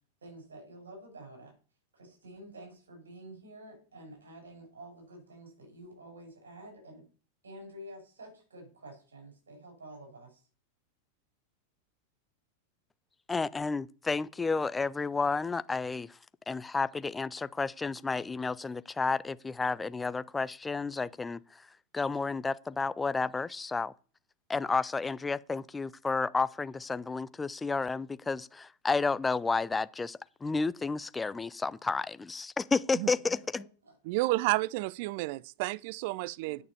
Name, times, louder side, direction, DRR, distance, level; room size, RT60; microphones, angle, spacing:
voice 1, 0.2-1.5 1.9-7.0 7.4-10.4 33.6-33.9 36.4-36.6, right 1 dB, 70° right, 6.8 m, -49 dB
voice 2, 13.3-16.2 16.5-21.6 21.9-23.9 24.5-33.6, left 4 dB, 10° left, 0.5 m, -31 dB
voice 3, 34.1-36.6, right 20 dB, 50° right, 0.5 m, -31 dB
10.0 x 6.7 x 6.9 m
figure-of-eight pair, 90°, 0 cm